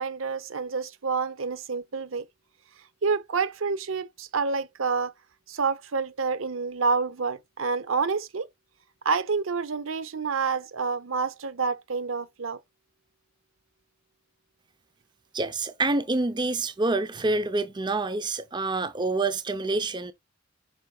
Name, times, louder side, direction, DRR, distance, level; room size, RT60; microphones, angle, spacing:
voice 1, 0.0-2.3 3.0-5.1 5.5-8.5 9.0-12.6, right 5 dB, 80° right, 0.7 m, -28 dB
voice 2, 15.3-20.1, right 2 dB, 20° right, 0.6 m, -27 dB
7.9 x 5.7 x 2.2 m
head